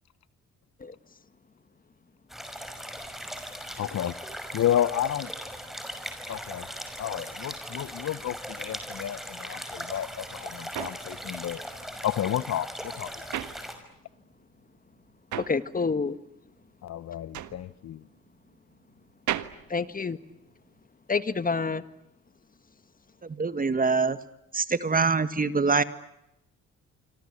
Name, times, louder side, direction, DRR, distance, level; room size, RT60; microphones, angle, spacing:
sound 1, 2.3-13.8, equal, ahead, 5.7 m, -39 dB
voice 1, 3.8-4.1 4.5-5.3 6.3-6.7 7.0-11.6 12.0-13.3 16.8-18.0, left 11 dB, 60° left, 1.0 m, -31 dB
sound 2, 10.0-14.3 14.6-20.8, right 12 dB, 75° right, 1.5 m, -38 dB
voice 2, 15.3-16.2 19.7-20.2 21.1-21.8, left 4 dB, 30° left, 1.6 m, -28 dB
voice 3, 23.2-24.2 24.5-25.8, right 4 dB, 30° right, 1.8 m, -24 dB
26.5 x 26.5 x 8.4 m
cardioid pair, 90°, 30 cm